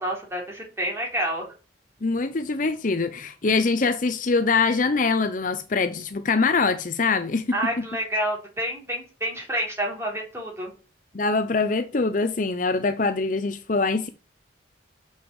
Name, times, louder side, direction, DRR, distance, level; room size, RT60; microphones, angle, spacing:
voice 1, 0.0-1.4 7.5-10.7, right 1 dB, 15° right, 4.1 m, -28 dB
voice 2, 2.0-7.8 11.1-14.1, left 4 dB, 45° left, 0.6 m, -23 dB
7.1 x 6.4 x 7.0 m
head